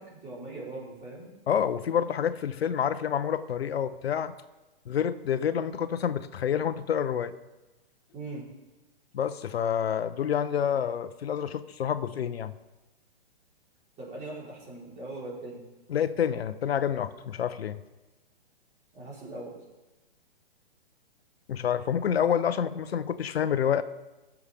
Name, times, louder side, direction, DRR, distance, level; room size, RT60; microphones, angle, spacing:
voice 1, 0.0-1.3 8.1-8.5 14.0-15.6 18.9-19.6, right 2 dB, 25° right, -5 dB, 3.8 m, -40 dB
voice 2, 1.5-4.3 4.9-7.3 9.1-12.5 15.9-17.8 21.5-23.8, left 8 dB, 80° left, 12 dB, 0.7 m, -28 dB
18.5 x 7.2 x 3.4 m, 1.1 s
hypercardioid pair, 140°, 31 cm